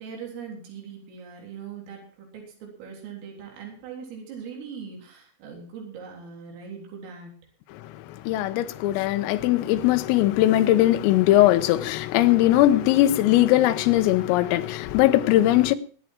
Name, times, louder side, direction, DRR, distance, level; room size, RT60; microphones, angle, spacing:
voice 1, 0.0-7.4, right 6 dB, 80° right, 6.2 m, -40 dB
voice 2, 7.7-15.8, left 14 dB, 85° left, 3.6 m, -20 dB
22.0 x 9.3 x 4.5 m
omnidirectional pair, 5.9 m